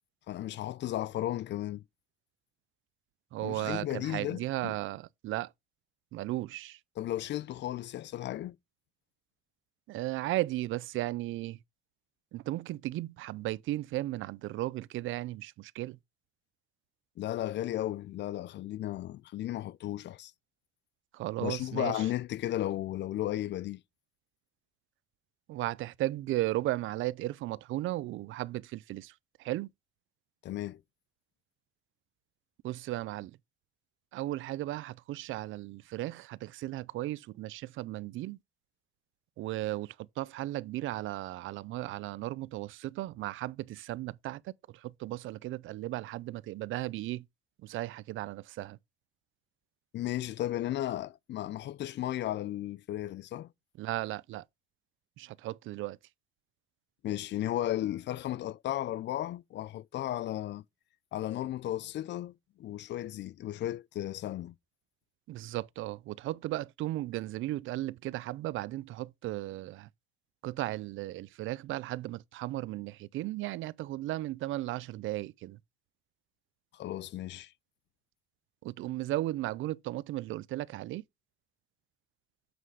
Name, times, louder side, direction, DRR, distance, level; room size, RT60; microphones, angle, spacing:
voice 1, 0.3-1.8 3.4-4.7 7.0-8.6 17.2-20.3 21.4-23.8 30.4-30.8 49.9-53.5 57.0-60.6 61.1-64.5 76.7-77.5, left 13 dB, 60° left, 0.4 m, -34 dB
voice 2, 3.3-5.5 6.1-6.8 9.9-11.6 12.3-16.0 21.1-22.0 25.5-29.1 29.4-29.7 32.6-33.4 34.1-38.4 39.4-47.2 47.6-48.8 53.8-54.4 55.2-56.0 65.3-69.9 70.4-75.6 78.6-81.0, right 16 dB, 80° right, 0.4 m, -35 dB
7.9 x 4.7 x 3.8 m
cardioid pair, 90°, 20 cm